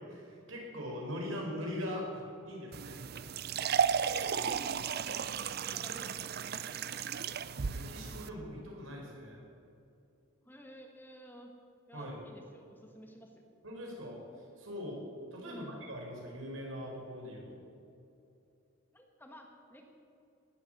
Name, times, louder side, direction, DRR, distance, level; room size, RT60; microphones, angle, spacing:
voice 1, 0.1-3.0 7.6-9.4 11.9-12.2 13.6-17.7, equal, 80° right, -1 dB, 4.9 m, -41 dB
sound 1, 2.7-8.3, right 7 dB, 50° right, 0.5 m, -34 dB
voice 2, 4.0-5.2 5.7-6.9 10.4-11.5 11.9-13.4 15.4-15.8 18.9-19.8, equal, 10° left, 2 dB, 1.5 m, -53 dB
19.0 x 8.6 x 7.9 m, 2.6 s
head